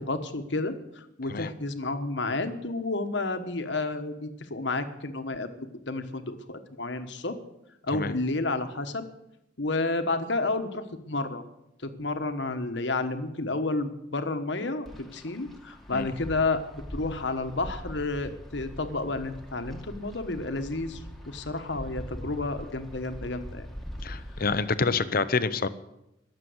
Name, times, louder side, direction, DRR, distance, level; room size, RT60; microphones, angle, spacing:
voice 1, 0.0-7.4 7.8-9.0 9.6-11.4 11.8-23.7, left 3 dB, 65° left, 8 dB, 1.4 m, -31 dB
Wind, 14.9-24.6, equal, ahead, 1.6 m, -42 dB
voice 2, 24.0-25.7, left 4 dB, 50° left, 13 dB, 0.7 m, -27 dB
21.0 x 7.5 x 8.0 m, 0.87 s
head